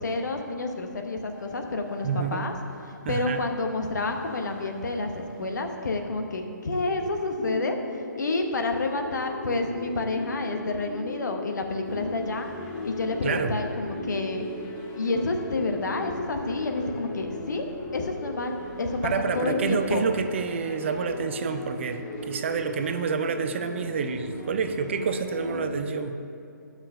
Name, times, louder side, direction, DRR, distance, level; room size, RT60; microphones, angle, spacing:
voice 1, 0.0-2.6 2.8-12.5 12.8-14.5 15.0-17.7 17.9-20.0, left 2 dB, 65° left, 4 dB, 0.9 m, -29 dB
sound 1, 1.2-6.9, right 1 dB, 10° right, 1.1 m, -50 dB
voice 2, 2.0-2.5 3.0-3.4 13.2-13.6 19.0-26.2, right 6 dB, 35° right, 9 dB, 0.4 m, -28 dB
sound 2, 6.7-26.0, left 2 dB, 50° left, 1.7 m, -37 dB
sound 3, 11.9-25.8, left 1 dB, 15° left, 0.7 m, -46 dB
7.9 x 5.7 x 5.5 m, 2.6 s
figure-of-eight pair, 145°, 10 cm